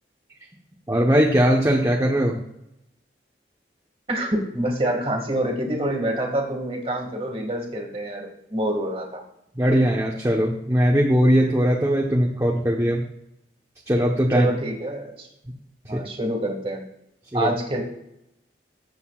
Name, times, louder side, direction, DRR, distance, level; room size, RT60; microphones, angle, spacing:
voice 1, 0.9-2.4 9.6-13.0 13.9-14.5 15.9-16.0 17.3-17.5, equal, 15° right, -2 dB, 1.1 m, -20 dB
voice 2, 4.1-9.2 14.3-15.3 15.9-16.8 17.3-17.8, right 1 dB, 30° right, 2 dB, 2.1 m, -26 dB
21.5 x 8.0 x 2.5 m, 0.82 s
head